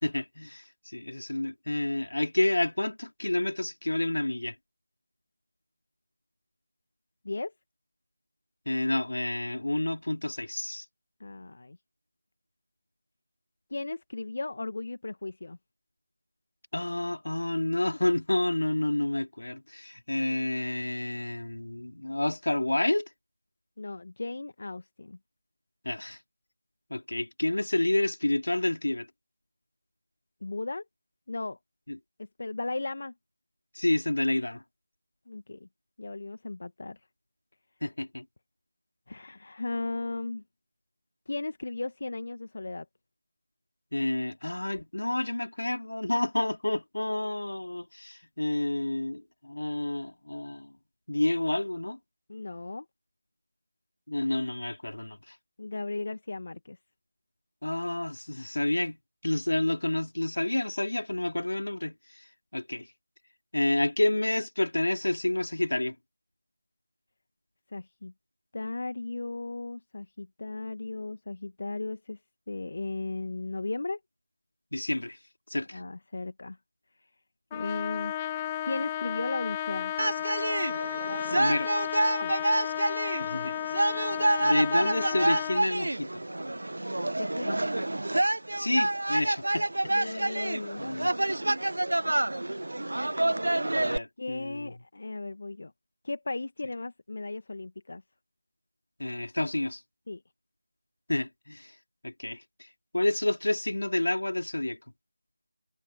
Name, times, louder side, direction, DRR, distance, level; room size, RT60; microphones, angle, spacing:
voice 1, 0.0-4.5 8.6-10.8 16.7-23.1 25.8-26.2 26.9-29.1 31.9-32.0 33.7-34.6 37.8-38.2 43.9-50.7 51.1-52.0 54.1-55.3 57.6-62.3 62.5-62.9 63.5-65.9 74.7-75.2 75.5-75.8 81.3-81.7 83.2-83.6 84.4-86.2 88.6-90.3 90.8-91.1 93.7-94.7 99.0-99.8 101.1-101.7 102.0-102.7 102.9-104.8, left 1 dB, 70° left, 3.4 m, -29 dB
voice 2, 11.2-11.8 13.7-15.6 23.8-25.2 30.4-30.8 31.3-31.6 32.2-33.1 35.3-35.7 36.0-37.0 39.1-40.4 41.3-42.8 52.3-52.8 55.6-56.8 67.7-68.1 68.5-72.2 72.5-74.0 75.7-76.6 77.0-77.1 77.5-78.1 78.7-79.9 82.2-82.4 87.2-87.6 89.9-90.8 94.2-95.7 96.0-98.0 100.1-100.2, left 2 dB, 50° left, 1.6 m, -36 dB
Trumpet, 77.5-85.7, left 12 dB, 15° left, 0.8 m, -33 dB
sound 1, 80.0-94.0, right 1 dB, 70° right, 0.8 m, -28 dB
figure-of-eight pair, 165°, 0 cm